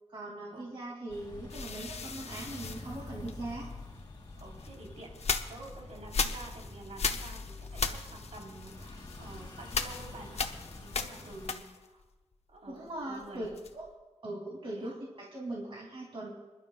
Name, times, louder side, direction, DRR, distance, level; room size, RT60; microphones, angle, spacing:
voice 1, 0.1-3.7 12.7-13.5 13.7-13.8 14.2-16.3, right 1 dB, 50° right, -3 dB, 2.7 m, -40 dB
sound 1, 1.1-11.5, left 2 dB, 40° left, 2.3 m, -46 dB
sound 2, 1.5-3.7 4.4-12.0 12.3-13.9, left 5 dB, 70° left, 0.8 m, -37 dB
voice 2, 4.4-5.1 5.5-10.5 10.8-12.0 12.5-13.5 14.8-15.0, right 2 dB, 75° right, -2 dB, 3.7 m, -49 dB
26.5 x 11.5 x 2.4 m, 1.2 s
wide cardioid pair, 125°, 11 cm